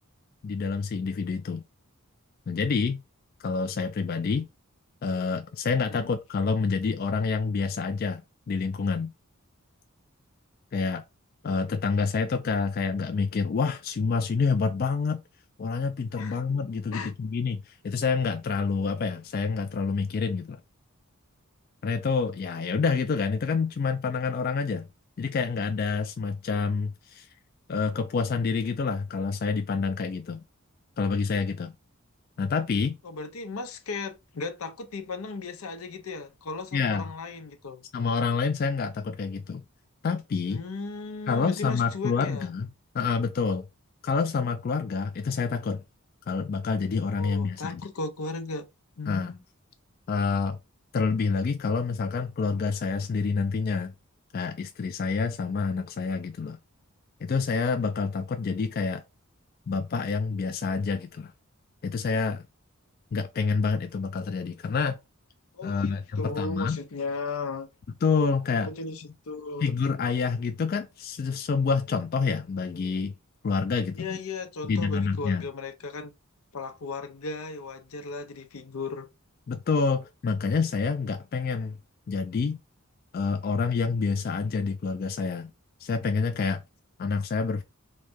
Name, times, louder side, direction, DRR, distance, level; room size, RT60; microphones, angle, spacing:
voice 1, 0.4-1.6 2.5-3.0 3.4-4.5 5.0-8.2 8.5-9.1 10.7-11.0 11.4-15.2 15.6-20.6 21.8-24.9 25.2-27.3 27.7-30.4 31.0-31.7 32.4-33.0 36.7-37.0 37.9-39.6 40.0-40.6 41.3-42.7 42.9-43.7 44.0-45.8 46.3-47.8 49.1-49.3 50.1-50.6 50.9-53.9 54.3-56.6 57.2-59.0 59.7-61.3 61.8-62.4 63.1-65.0 65.6-66.8 68.0-68.7 69.6-73.1 73.4-74.2 74.7-75.5 79.5-81.8 82.1-82.6 83.1-85.5 85.8-86.6 87.0-87.6, left 5 dB, 45° left, 0.3 m, -27 dB
voice 2, 33.0-37.8 40.5-42.5 47.1-48.7 49.0-49.4 65.5-67.7 68.5-69.7 73.9-76.1 76.5-79.1, left 3 dB, 85° left, 0.7 m, -36 dB
3.1 x 2.7 x 3.5 m
head